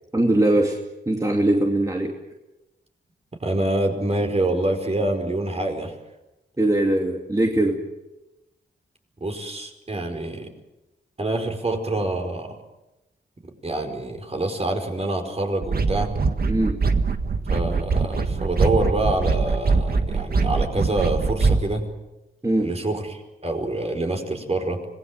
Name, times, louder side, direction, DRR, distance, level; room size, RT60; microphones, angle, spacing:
voice 1, 0.1-0.8 1.1-2.1 6.6-7.8 16.5-16.8 22.4-22.7, right 1 dB, 20° right, 1 dB, 2.6 m, -21 dB
voice 2, 3.4-5.9 9.2-10.5 11.2-12.5 13.6-16.1 17.5-21.9 22.6-24.8, right 2 dB, 35° right, 4 dB, 4.9 m, -26 dB
sound 1, 15.6-21.7, right 4 dB, 55° right, 1.7 m, -22 dB
25.5 x 20.0 x 7.6 m, 0.96 s
wide cardioid pair, 95°, 19 cm